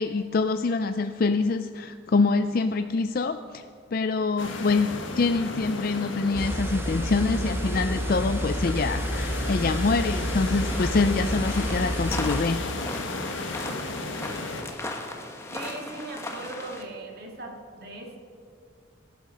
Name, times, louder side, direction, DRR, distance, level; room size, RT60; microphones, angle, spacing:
voice 1, 0.0-3.6 3.9-12.6, left 3 dB, 45° left, 9 dB, 0.4 m, -25 dB
sound 1, 4.4-14.6, left 2 dB, 70° left, 1.7 m, -34 dB
sound 2, 6.3-12.4, equal, 10° right, 0.7 m, -30 dB
sound 3, 10.6-16.8, left 2 dB, 15° left, 1.1 m, -37 dB
voice 2, 15.5-18.2, right 2 dB, 50° right, 1 dB, 2.3 m, -39 dB
18.5 x 11.5 x 5.4 m, 2.3 s
head